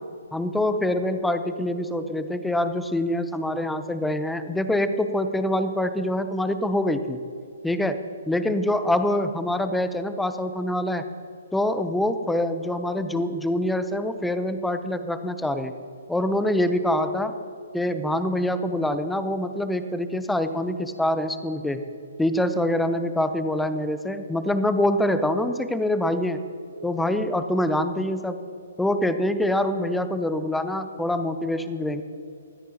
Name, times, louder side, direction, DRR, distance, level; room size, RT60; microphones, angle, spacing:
voice 1, 0.3-7.2 7.6-8.0 8.3-11.1 11.5-15.7 16.1-17.3 17.7-21.8 22.2-26.4 26.8-28.4 28.8-32.0, left 1 dB, 5° left, 10 dB, 0.7 m, -25 dB
20.0 x 13.5 x 2.9 m, 2.6 s
figure-of-eight pair, 130°, 0 cm